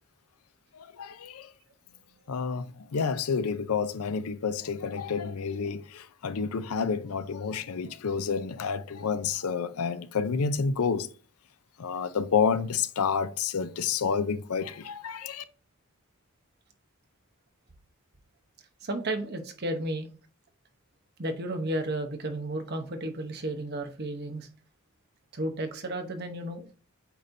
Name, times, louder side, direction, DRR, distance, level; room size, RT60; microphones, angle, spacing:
voice 1, 0.7-1.5 2.3-11.1 11.8-15.4, left 6 dB, 90° left, 0.5 m, -29 dB
voice 2, 18.8-20.1 21.2-24.5 25.3-26.7, right 1 dB, 45° right, 0.9 m, -33 dB
8.3 x 4.2 x 2.7 m
head